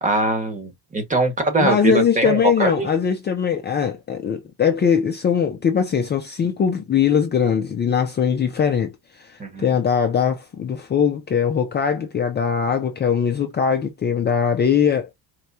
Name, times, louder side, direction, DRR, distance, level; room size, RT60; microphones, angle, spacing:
voice 1, 0.0-2.9 9.4-9.7, right 2 dB, 15° right, 1.1 m, -22 dB
voice 2, 1.6-15.1, left 7 dB, 25° left, 0.5 m, -21 dB
4.6 x 3.1 x 2.7 m
cardioid pair, 160°, 45 cm